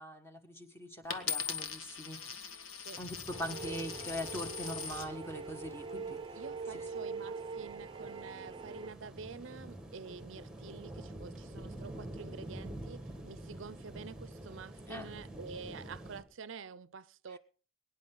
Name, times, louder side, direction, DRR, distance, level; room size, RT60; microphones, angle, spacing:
voice 1, 0.0-2.2 2.9-6.2 6.7-6.9 14.9-15.1 17.3-17.4, equal, 10° left, 1.6 m, -42 dB
Coin (dropping), 1.1-5.1 5.8-6.2, left 7 dB, 85° left, 1.7 m, -41 dB
sound 1, 3.0-16.2, right 1 dB, 5° right, 1.7 m, -48 dB
sound 2, 3.3-8.9, right 4 dB, 25° right, 0.7 m, -43 dB
voice 2, 6.4-17.4, right 5 dB, 65° right, 0.6 m, -48 dB
23.0 x 10.5 x 3.9 m
head